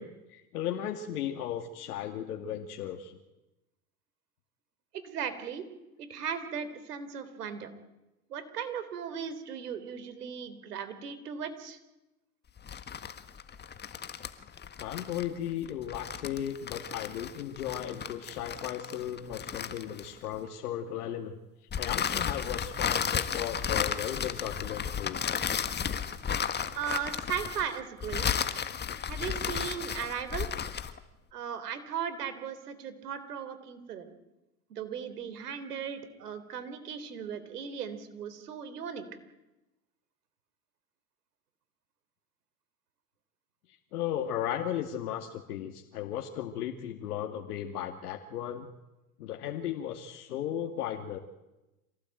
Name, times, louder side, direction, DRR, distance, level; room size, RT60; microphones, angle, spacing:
voice 1, 0.0-3.2 14.8-21.4 21.8-25.3 43.9-48.7 49.2-51.2, left 10 dB, 75° left, 4 dB, 2.4 m, -36 dB
voice 2, 4.9-5.7 6.0-7.7 8.3-11.8 26.7-28.3 29.1-30.5 31.3-34.1 34.7-39.1, right 7 dB, 85° right, 11 dB, 3.8 m, -37 dB
sound 1, 12.6-20.4 21.7-31.0, left 7 dB, 20° left, 1.7 m, -34 dB
27.5 x 18.0 x 9.2 m, 0.99 s
hypercardioid pair, 110°, 45 cm